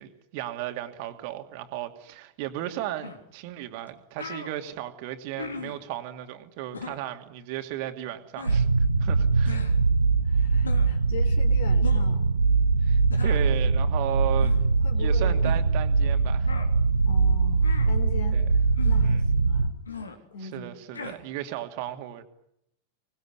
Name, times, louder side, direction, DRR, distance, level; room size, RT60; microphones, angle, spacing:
voice 1, 0.0-9.6 12.8-16.5 18.3-18.6 19.0-19.3 20.4-22.2, right 13 dB, 45° right, 7 dB, 2.6 m, -35 dB
sound 1, 3.0-3.2 3.9-4.0 4.2-4.5 5.4-5.8 6.7-7.0 8.3-8.6 9.4-9.7 10.6-11.0 11.8-12.1 13.1-13.5 14.4-14.6 15.4-15.7 16.4-16.7 17.6-17.9 18.8-19.1 19.8-20.1 20.9-21.2, left 5 dB, 75° left, 3.5 m, -38 dB
sound 2, 8.5-19.7, right 4 dB, 80° right, 0.9 m, -22 dB
voice 2, 10.2-12.3 14.8-15.4 17.1-18.4 18.8-19.7 20.3-20.7, left 5 dB, 55° left, 8 dB, 4.6 m, -40 dB
25.0 x 20.0 x 9.8 m, 0.76 s
figure-of-eight pair, 90°, 0 cm